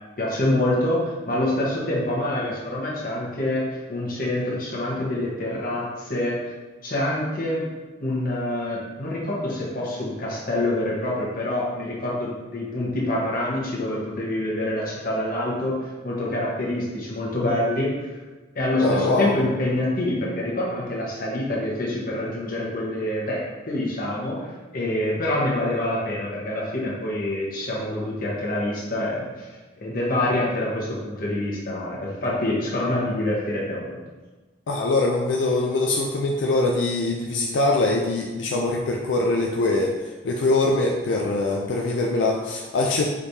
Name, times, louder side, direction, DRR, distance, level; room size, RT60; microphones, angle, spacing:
voice 1, 0.2-3.6 3.9-6.5 6.8-7.7 8.0-18.1 18.5-29.5 29.8-34.0, left 1 dB, 55° left, -5 dB, 1.2 m, -26 dB
voice 2, 18.8-19.3 34.7-43.1, left 2 dB, 85° left, 0 dB, 0.4 m, -23 dB
5.0 x 3.2 x 2.7 m, 1.2 s
head